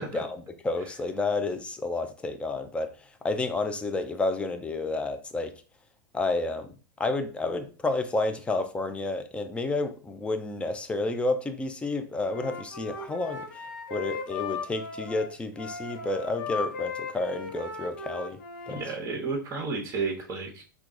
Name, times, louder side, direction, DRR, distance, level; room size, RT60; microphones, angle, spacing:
voice 1, 0.0-5.5 6.1-6.7 7.0-13.4 13.9-18.4 18.7-18.8, left 2 dB, 10° left, 0.5 m, -30 dB
Wind instrument woodwind instrument, 12.2-18.9, left 4 dB, 80° left, 1.2 m, -37 dB
voice 2, 18.7-20.6, right 4 dB, 25° right, 1.1 m, -32 dB
4.5 x 2.4 x 3.7 m
hypercardioid pair, 115°, 11 cm